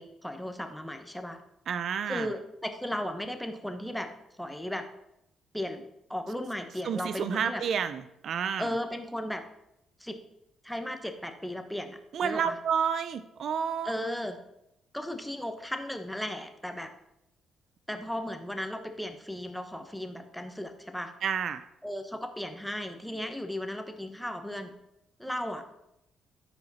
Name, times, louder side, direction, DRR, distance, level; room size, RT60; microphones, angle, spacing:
voice 1, 0.0-1.4 2.1-4.1 4.4-4.9 5.5-5.8 6.1-7.6 8.6-9.4 10.0-10.2 10.6-12.5 13.8-14.4 14.9-16.9 17.9-21.1 21.8-24.7 25.2-25.6, left 1 dB, 5° left, 6 dB, 1.1 m, -35 dB
voice 2, 1.7-2.3 6.8-8.7 12.1-13.9 21.2-21.7, right 7 dB, 65° right, 12 dB, 0.5 m, -30 dB
13.5 x 5.0 x 4.2 m, 0.83 s
cardioid pair, 90°, 0 cm